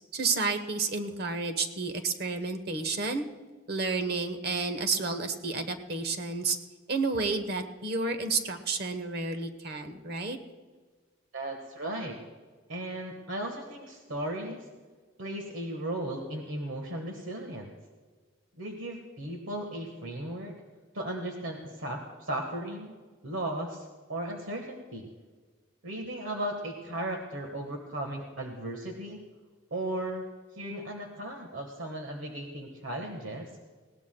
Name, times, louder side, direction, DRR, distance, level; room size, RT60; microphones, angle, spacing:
voice 1, 0.1-3.2 3.7-6.6 6.9-10.4, right 3 dB, 50° right, 8 dB, 1.1 m, -31 dB
voice 2, 11.3-12.2 12.7-14.7 15.2-17.7 18.6-20.6 20.9-22.9 23.2-25.1 25.8-29.2 29.7-30.2 30.5-33.5, right 1 dB, 75° right, 2 dB, 1.5 m, -36 dB
20.5 x 18.0 x 2.3 m, 1.4 s
head